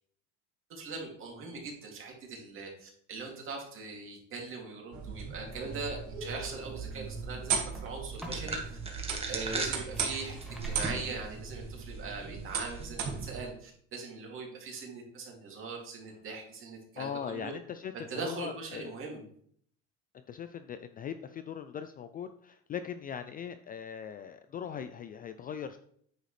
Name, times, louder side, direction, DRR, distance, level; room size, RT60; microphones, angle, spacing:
voice 1, 0.7-8.8 9.3-10.4 10.7-17.5 18.1-19.2, right 4 dB, 40° right, 0 dB, 2.7 m, -41 dB
sound 1, 4.9-13.4, right 6 dB, 60° right, 2.1 m, -37 dB
sound 2, 6.7-8.6 9.1-11.6, left 1 dB, ahead, 1.6 m, -50 dB
sound 3, 8.2-11.2 11.6-11.7 12.5-12.9, right 3 dB, 20° right, 1.5 m, -38 dB
voice 2, 17.0-18.9 20.1-25.8, left 8 dB, 30° left, 10 dB, 0.3 m, -40 dB
9.1 x 6.5 x 3.3 m, 0.63 s
cardioid pair, 140°, 32 cm